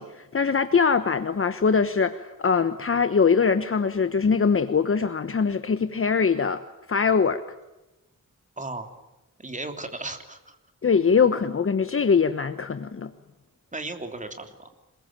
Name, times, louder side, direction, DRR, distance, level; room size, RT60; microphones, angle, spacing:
voice 1, 0.0-6.6 6.9-7.4 10.8-13.1, left 5 dB, 45° left, 11 dB, 1.1 m, -22 dB
voice 2, 8.6-8.9 9.4-10.6 13.7-14.7, right 2 dB, 25° right, 6 dB, 3.3 m, -35 dB
27.0 x 22.0 x 9.1 m, 0.99 s
wide cardioid pair, 155°, 32 cm